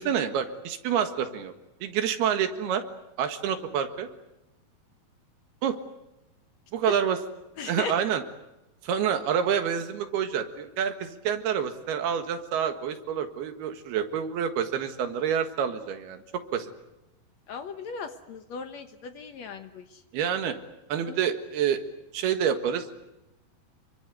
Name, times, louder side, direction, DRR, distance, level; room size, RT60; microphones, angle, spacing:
voice 1, 0.0-1.5 1.8-2.8 3.2-4.1 5.6-5.8 6.7-7.2 7.7-8.2 8.8-16.2 16.5-16.7 20.1-20.6 20.9-21.8 22.1-22.9, right 8 dB, 85° right, 7 dB, 3.7 m, -27 dB
voice 2, 7.6-8.0 17.5-20.0 21.1-21.2, left 5 dB, 65° left, 8 dB, 1.9 m, -37 dB
28.0 x 23.5 x 8.2 m, 0.94 s
omnidirectional pair, 4.4 m